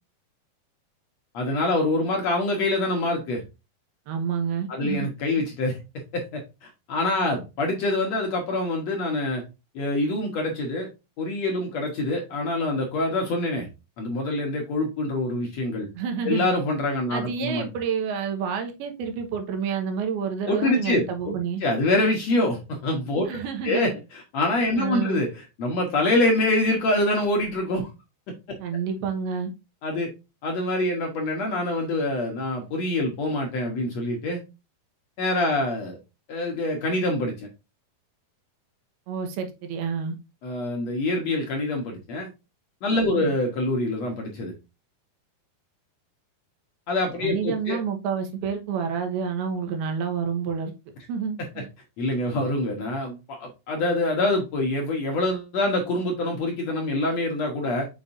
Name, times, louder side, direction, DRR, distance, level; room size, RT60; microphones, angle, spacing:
voice 1, 1.3-3.4 4.7-5.8 6.1-9.4 9.8-10.9 11.2-13.7 14.0-15.9 16.2-17.7 20.5-21.3 21.6-23.3 23.6-27.9 29.8-30.1 30.4-34.4 35.2-36.0 36.3-37.5 40.4-42.3 42.8-44.5 46.9-47.8 52.0-57.9, left 2 dB, 60° left, 1.9 m, -25 dB
voice 2, 4.1-5.1 15.9-16.5 17.1-21.6 23.2-23.9 24.8-25.2 28.6-29.5 39.1-40.2 43.1-43.3 47.2-50.7 51.1-51.7, right 6 dB, 85° right, 3.0 m, -29 dB
7.2 x 5.3 x 2.6 m
omnidirectional pair, 4.4 m